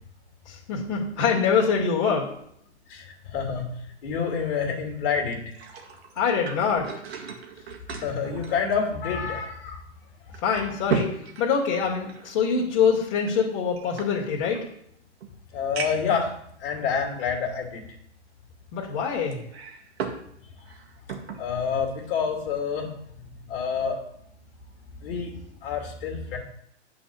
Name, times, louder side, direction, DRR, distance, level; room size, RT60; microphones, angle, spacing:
voice 1, 0.5-2.3 6.2-6.9 10.4-11.1 11.4-14.6 18.7-19.4, left 6 dB, 40° left, -3 dB, 2.2 m, -24 dB
voice 2, 2.9-3.7 4.0-5.4 7.9-9.8 15.5-16.3 16.6-17.8 21.4-24.0 25.0-26.4, left 6 dB, 55° left, 2 dB, 2.4 m, -28 dB
sound 1, 5.3-9.3 9.7-9.8 10.3-12.3 13.2-14.6 15.2-15.3 15.7-16.2 16.9-17.0 19.3-20.3 20.6-21.4 21.9-22.1, right 6 dB, 60° right, 1.8 m, -35 dB
8.8 x 4.3 x 7.0 m, 0.71 s
hypercardioid pair, 140°, 35 cm